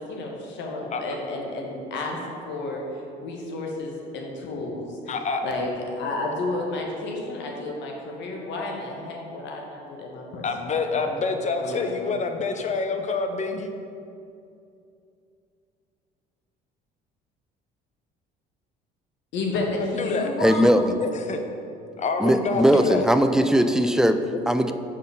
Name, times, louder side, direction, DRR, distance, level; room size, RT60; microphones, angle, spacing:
voice 1, 0.0-2.2 2.4-2.8 3.2-5.1 5.4-10.5 10.9-11.2 11.6-11.9 19.3-20.8, left 2 dB, 65° left, 0 dB, 1.2 m, -31 dB
voice 2, 5.1-5.5 10.4-13.7 19.8-20.3 21.0-21.4 22.0-23.1 24.3-24.4, left 4 dB, 35° left, 6 dB, 0.7 m, -27 dB
voice 3, 20.4-20.9 22.2-24.2 24.5-24.7, equal, 5° right, 8 dB, 0.4 m, -19 dB
5.3 x 4.2 x 5.5 m, 2.6 s
supercardioid pair, 70°, 20 cm